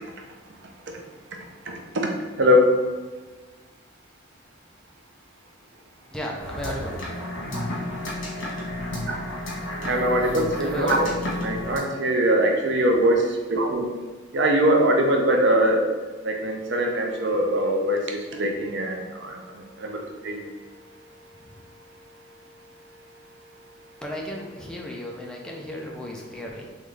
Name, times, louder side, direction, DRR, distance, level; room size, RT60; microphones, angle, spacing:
voice 1, 2.4-2.7 9.9-11.1 11.4-13.2 13.5-13.9 14.3-15.8 16.2-18.0 18.4-19.0 19.8-20.0 20.2-20.4, equal, 65° right, 2 dB, 0.6 m, -21 dB
voice 2, 6.1-7.0 10.6-11.1 24.0-26.7, equal, 5° left, -2 dB, 0.5 m, -34 dB
sound 1, 6.4-11.8, left 1 dB, 85° left, 1.4 m, -32 dB
3.7 x 3.1 x 3.2 m, 1.3 s
head